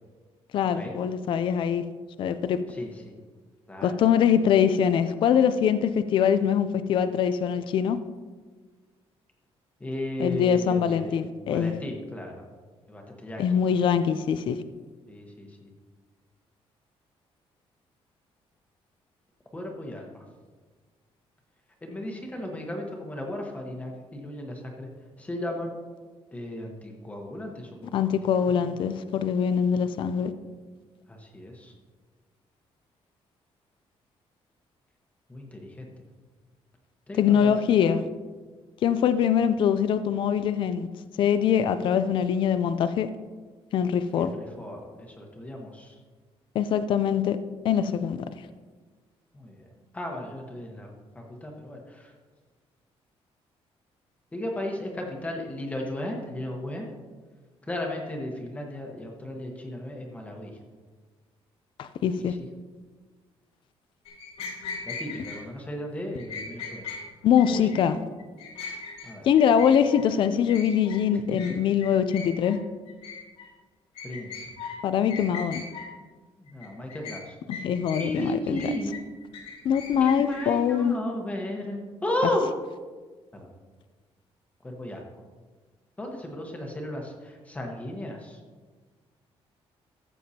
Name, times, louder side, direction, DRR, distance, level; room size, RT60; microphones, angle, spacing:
voice 1, 0.5-1.8 2.2-2.6 3.8-8.0 10.2-11.7 13.4-14.6 27.9-30.3 37.2-38.0 38.8-40.9 41.2-43.1 43.7-44.3 46.5-47.4 47.6-48.2 61.8-62.3 67.2-68.0 69.2-72.6 74.8-75.6 77.6-78.6 79.6-81.0, left 8 dB, 50° left, 12 dB, 0.4 m, -23 dB
voice 2, 9.8-11.2 11.5-12.4 12.9-13.5 15.1-15.7 19.5-20.2 21.8-24.9 25.2-25.8 26.3-28.1 28.5-28.7 31.1-31.7 35.3-35.8 37.1-37.5 44.2-45.9 49.3-49.7 49.9-52.1 54.3-56.9 57.6-60.5 64.8-66.9 67.5-67.7 69.0-69.3 74.0-74.5 76.4-77.4 78.0-79.0 80.0-82.5 83.3-83.5 84.6-85.1 86.0-88.4, left 1 dB, 15° left, 1 dB, 1.1 m, -35 dB
sound 1, 64.1-65.4 66.2-67.0 67.4-67.8 68.2-69.1 69.4-70.0 70.5-71.0 71.4-71.6 71.8-72.6 72.9-73.5 74.0-74.8 75.1-75.9 76.5-77.2 77.5-78.2 78.6-80.5, left 5 dB, 85° left, 3.0 m, -39 dB
14.5 x 7.7 x 2.8 m, 1.4 s
cardioid pair, 175°, 10 cm